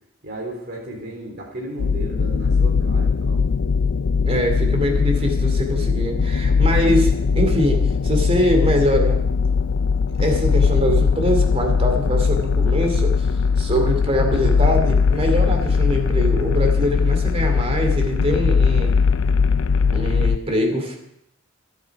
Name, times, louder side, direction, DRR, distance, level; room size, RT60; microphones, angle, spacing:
voice 1, 0.2-3.4, right 1 dB, 50° right, -1 dB, 3.5 m, -34 dB
sound 1, 1.8-20.4, left 5 dB, 70° left, 0.4 m, -19 dB
voice 2, 4.3-9.2 10.2-13.3 13.6-19.0 19.9-21.0, equal, 30° right, 4 dB, 2.7 m, -23 dB
24.5 x 8.4 x 4.8 m, 0.80 s
head